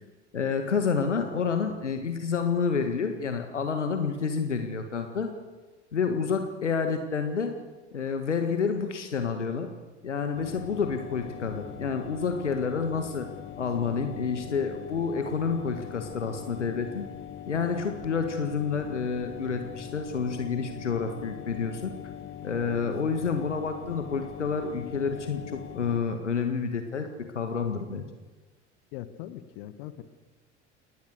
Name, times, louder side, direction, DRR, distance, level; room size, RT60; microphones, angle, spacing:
voice 1, 0.3-5.3 5.9-7.5 7.9-9.7 10.0-13.3 13.6-17.1 17.5-21.9 22.4-27.1 27.3-28.1, left 5 dB, 80° left, 6 dB, 1.8 m, -29 dB
sound 1, 10.3-26.0, left 10 dB, 35° left, 2.0 m, -41 dB
voice 2, 28.9-30.0, left 13 dB, 55° left, 12 dB, 1.6 m, -41 dB
29.5 x 19.5 x 6.7 m, 1.3 s
figure-of-eight pair, 70°, 35 cm